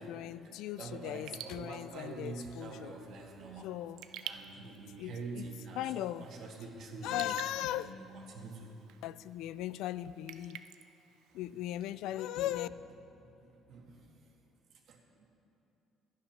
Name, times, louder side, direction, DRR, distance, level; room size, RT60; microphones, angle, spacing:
voice 1, 0.0-2.9 3.6-4.0 5.0-5.5 5.8-6.3 7.0-7.9 9.0-10.6 11.3-12.7, left 13 dB, 80° left, 16 dB, 0.3 m, -38 dB
voice 2, 0.8-3.8 4.2-7.3 7.6-8.7 12.4-12.5 13.4-14.1 14.9-15.3, right 3 dB, 60° right, 1 dB, 1.8 m, -46 dB
Raindrop / Drip, 1.1-11.9, right 11 dB, 75° right, 0.5 m, -51 dB
12.0 x 10.5 x 5.8 m, 2.9 s
cardioid pair, 135°, 0 cm